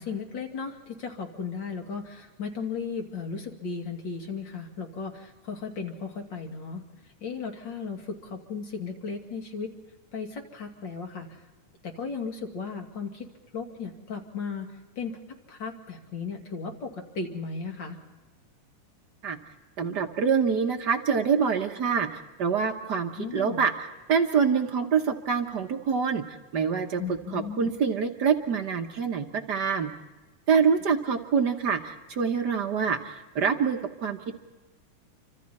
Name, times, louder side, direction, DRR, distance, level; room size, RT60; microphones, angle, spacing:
voice 1, 0.0-6.8 7.2-9.7 10.1-11.4 11.8-13.3 13.5-14.7 15.0-18.0 23.2-23.6 27.0-27.7, left 5 dB, 40° left, 3 dB, 2.7 m, -35 dB
voice 2, 19.8-29.9 30.5-34.3, right 6 dB, 55° right, 4 dB, 1.2 m, -26 dB
28.5 x 25.5 x 4.2 m, 1.2 s
omnidirectional pair, 3.4 m